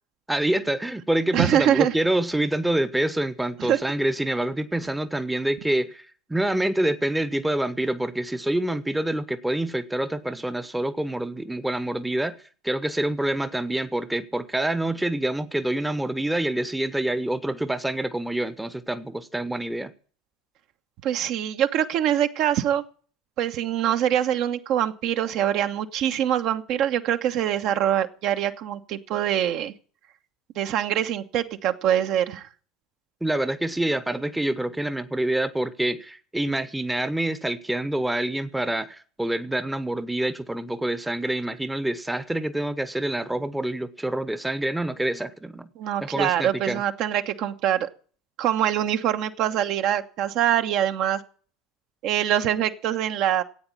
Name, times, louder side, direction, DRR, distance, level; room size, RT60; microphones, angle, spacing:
voice 1, 0.3-12.4 12.6-19.9 33.2-45.7 46.0-46.8, right 1 dB, 5° right, 1.0 m, -26 dB
voice 2, 1.3-1.9 3.6-3.8 21.0-22.8 23.4-29.7 30.5-32.5 45.8-47.9 48.4-51.2 52.0-53.4, right 10 dB, 50° right, 1.1 m, -24 dB
13.5 x 8.9 x 8.6 m
figure-of-eight pair, 70°, 0 cm